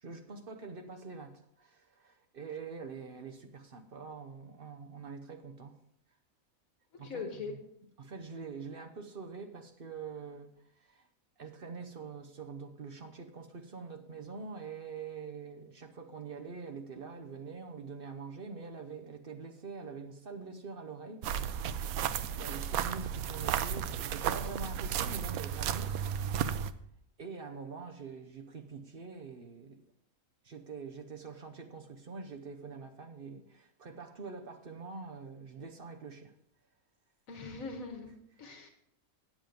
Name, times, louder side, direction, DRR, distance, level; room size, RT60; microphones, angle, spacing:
voice 1, 0.0-5.8 7.0-7.6 8.0-11.1 11.4-21.3 22.4-26.0 27.2-29.8 30.4-36.3 38.4-38.5, right 5 dB, 50° right, 0.9 m, -45 dB
voice 2, 7.0-7.5 37.3-38.7, left 4 dB, 75° left, 1.5 m, -41 dB
sound 1, 21.2-26.7, right 9 dB, 90° right, 1.0 m, -33 dB
9.1 x 7.5 x 5.1 m
omnidirectional pair, 1.4 m